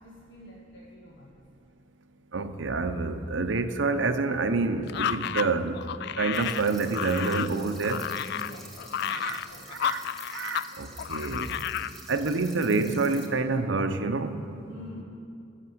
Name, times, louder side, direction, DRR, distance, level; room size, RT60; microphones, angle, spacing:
voice 1, 0.0-1.3 8.4-9.7 14.6-15.0, left 1 dB, 85° left, -3 dB, 1.4 m, -47 dB
voice 2, 2.3-5.8 6.2-8.0 9.1-9.4 9.7-10.0 10.3-11.6 12.1-14.3, right 3 dB, 85° right, 8 dB, 0.8 m, -27 dB
sound 1, 4.9-10.7 11.0-11.9, left 9 dB, 60° left, 0.3 m, -32 dB
sound 2, 6.3-13.3, right 1 dB, ahead, 1.7 m, -48 dB
16.0 x 6.7 x 7.9 m, 2.5 s
head